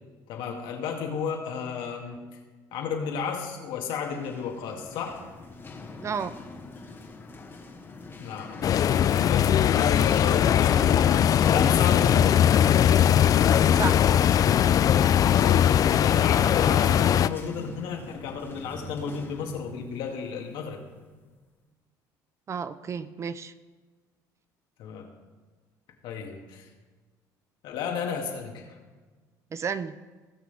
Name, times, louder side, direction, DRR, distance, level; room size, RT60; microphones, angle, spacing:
voice 1, 0.3-2.2 2.7-5.2 8.2-8.7 9.0-12.6 15.6-20.8 24.8-25.1 26.0-26.6 27.6-28.7, left 6 dB, 75° left, 1 dB, 2.0 m, -33 dB
sound 1, 3.8-21.3, left 3 dB, 25° left, 1.5 m, -45 dB
voice 2, 6.0-6.3 13.7-14.1 22.5-23.5 29.5-30.0, right 6 dB, 35° right, 13 dB, 0.5 m, -32 dB
sound 2, 8.6-17.3, left 10 dB, 45° left, 0.4 m, -20 dB
18.0 x 6.2 x 3.5 m, 1.3 s
supercardioid pair, 95°, 8 cm